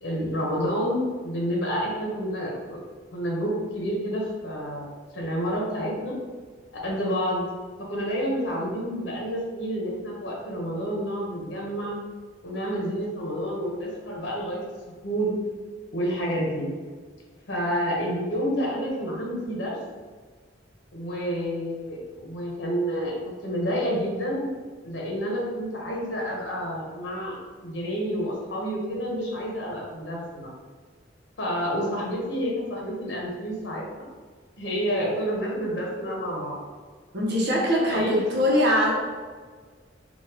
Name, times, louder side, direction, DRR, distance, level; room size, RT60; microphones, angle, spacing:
voice 1, 0.0-2.8 3.1-4.9 5.1-6.1 6.8-7.5 7.9-12.0 12.4-14.6 15.0-15.3 15.9-16.7 17.5-19.8 20.9-24.5 24.8-27.4 27.6-30.5 31.4-34.1 34.6-36.6 37.7-38.3, equal, 85° left, -3 dB, 0.8 m, -29 dB
voice 2, 37.1-38.9, equal, 65° right, -3 dB, 0.8 m, -22 dB
3.9 x 2.3 x 2.7 m, 1.5 s
head